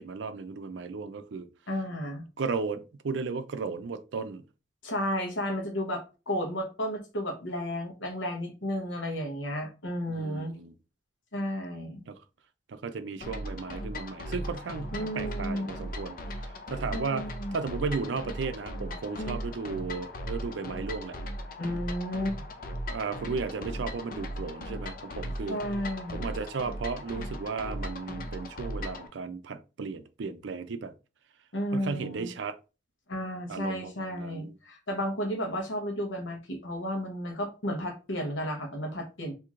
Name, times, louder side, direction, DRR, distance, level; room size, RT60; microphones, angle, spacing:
voice 1, 0.0-1.5 2.4-4.4 10.1-10.7 12.1-12.2 12.7-17.2 17.5-21.2 22.4-22.5 22.9-25.6 26.1-30.9 31.7-32.6 33.5-34.5, right 4 dB, 75° right, 0.4 m, -35 dB
voice 2, 1.7-2.2 4.8-10.6 11.3-12.0 14.9-15.7 16.9-17.6 19.2-19.4 21.6-22.4 25.5-26.3 31.5-32.3 33.1-39.3, equal, 85° left, 1.0 m, -33 dB
sound 1, 13.2-29.1, equal, 45° left, 0.5 m, -38 dB
4.4 x 2.7 x 2.5 m
head